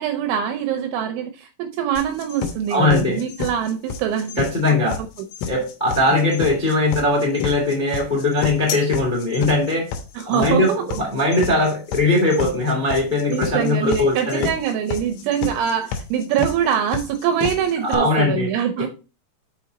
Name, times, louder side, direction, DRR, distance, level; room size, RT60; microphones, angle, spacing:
voice 1, 0.0-4.4 4.8-4.9 10.2-10.8 13.3-18.9, right 9 dB, 80° right, 6 dB, 2.8 m, -24 dB
sound 1, 2.0-18.0, left 7 dB, 75° left, 3.0 m, -29 dB
voice 2, 2.7-3.2 4.4-5.0 5.4-9.9 10.3-14.5 17.8-18.5 18.8-18.9, left 2 dB, 15° left, -1 dB, 1.7 m, -20 dB
6.2 x 5.9 x 4.1 m, 0.33 s
omnidirectional pair, 5.9 m